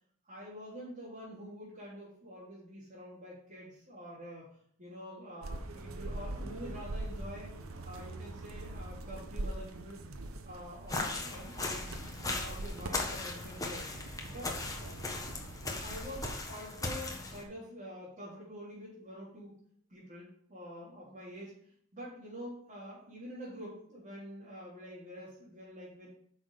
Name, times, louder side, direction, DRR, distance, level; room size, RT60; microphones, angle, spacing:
voice 1, 0.3-4.5 4.8-7.5 7.8-10.0 10.4-11.9 12.2-13.9 14.3-14.5 15.8-19.5 19.9-21.5 21.9-26.1, equal, 40° right, -9 dB, 3.6 m, -46 dB
sound 1, 5.4-16.3, right 2 dB, 75° right, 0.9 m, -43 dB
sound 2, 10.9-17.4, left 2 dB, 15° left, 1.4 m, -38 dB
9.2 x 6.3 x 5.0 m, 0.64 s
head